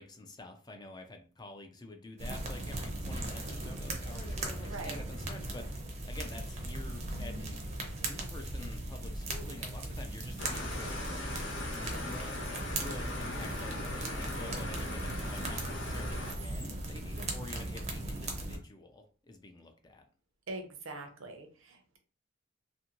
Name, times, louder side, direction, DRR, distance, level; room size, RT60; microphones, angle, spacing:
voice 1, 0.0-7.6 8.0-11.2 11.7-12.4 12.7-20.0, left 2 dB, 20° left, 5 dB, 0.3 m, -48 dB
sound 1, 2.2-18.6, right 2 dB, 30° right, 0.5 m, -38 dB
voice 2, 4.6-5.0 20.5-22.0, right 2 dB, 75° right, 5 dB, 0.6 m, -43 dB
sound 2, 7.1-9.8, left 2 dB, 90° left, 0.4 m, -53 dB
sound 3, 10.4-16.3, left 2 dB, 60° left, 0.8 m, -39 dB
2.6 x 2.6 x 2.8 m, 0.39 s
head